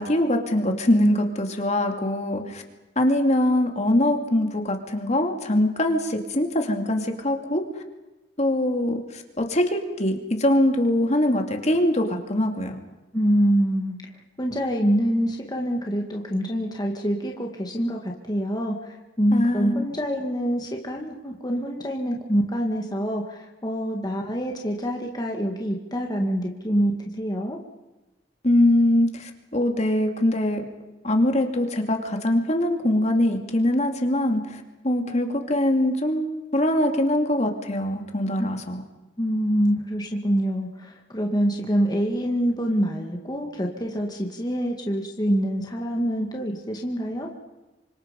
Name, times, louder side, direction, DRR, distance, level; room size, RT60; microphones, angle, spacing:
voice 1, 0.0-2.6 3.0-7.6 8.4-12.8 19.3-19.8 28.4-30.7 31.0-38.8, left 1 dB, 40° left, 4 dB, 2.5 m, -23 dB
voice 2, 13.1-14.0 14.4-27.6 38.4-38.5 39.2-47.3, equal, 20° left, 0 dB, 2.1 m, -25 dB
28.5 x 25.5 x 5.3 m, 1.1 s
head